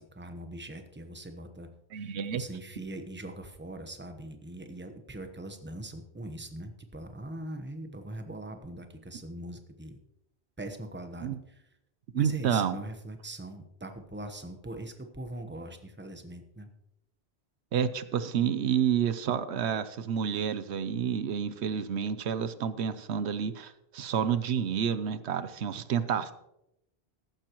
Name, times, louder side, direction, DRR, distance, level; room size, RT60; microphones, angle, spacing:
voice 1, 0.0-10.0 10.6-11.7 12.1-16.7, right 1 dB, 10° right, 6 dB, 1.0 m, -42 dB
voice 2, 1.9-2.4 11.2-11.4 12.1-12.8 17.7-26.3, right 8 dB, 85° right, 13 dB, 1.0 m, -29 dB
14.5 x 12.0 x 3.0 m, 0.83 s
omnidirectional pair, 1.1 m